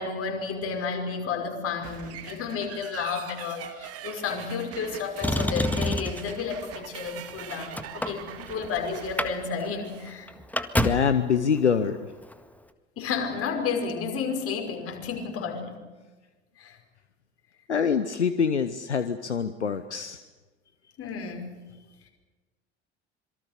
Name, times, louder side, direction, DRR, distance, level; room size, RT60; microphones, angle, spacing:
voice 1, 0.0-10.3 13.0-15.8 16.6-16.8 21.0-21.6, left 5 dB, 45° left, 3 dB, 5.6 m, -32 dB
sound 1, 1.8-10.2, right 10 dB, 45° right, 2.6 m, -43 dB
Motor vehicle (road), 5.2-6.4 7.1-8.7 9.0-9.3 9.6-9.7 10.1-11.2 12.2-12.3, left 1 dB, 5° left, 1.8 m, -27 dB
voice 2, 10.7-12.1 17.7-20.2, left 6 dB, 85° left, 12 dB, 0.9 m, -25 dB
26.5 x 23.5 x 6.7 m, 1.2 s
figure-of-eight pair, 60°, 33 cm